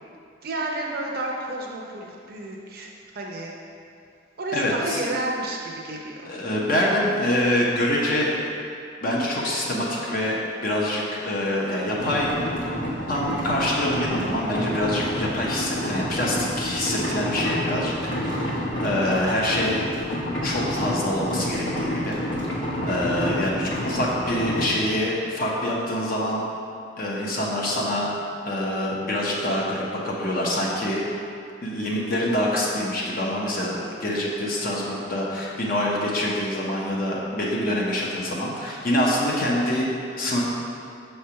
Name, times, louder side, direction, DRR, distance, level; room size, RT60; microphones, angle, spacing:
voice 1, 0.4-3.5 4.4-6.3, right 2 dB, 55° right, -2 dB, 0.7 m, -31 dB
voice 2, 4.5-5.0 6.2-8.5 9.0-12.5 13.1-19.8 20.4-22.2 22.9-26.4 27.0-28.1 28.4-31.0 31.6-39.9 40.2-40.4, left 1 dB, 50° left, -4 dB, 0.8 m, -25 dB
sound 1, 12.0-24.7, equal, 75° left, 1.3 m, -29 dB
5.9 x 3.3 x 5.6 m, 2.4 s
head